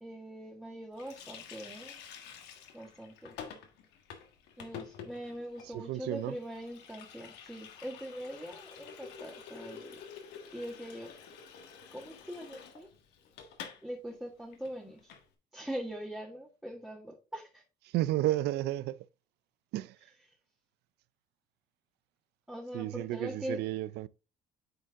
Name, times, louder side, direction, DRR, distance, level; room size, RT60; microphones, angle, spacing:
voice 1, 0.0-2.0 2.7-3.3 4.6-10.0 10.5-11.1 11.9-12.9 13.8-15.1 15.5-17.6 22.5-23.6, equal, 5° right, 1.6 m, -42 dB
Water tap faucet, 1.0-13.8 14.1-14.2 14.5-15.2, left 7 dB, 90° left, 1.6 m, -49 dB
voice 2, 5.7-6.4 17.9-19.1 19.7-20.0 22.7-24.1, right 15 dB, 80° right, 0.4 m, -32 dB
9.2 x 4.5 x 3.5 m
cardioid pair, 110°, 17 cm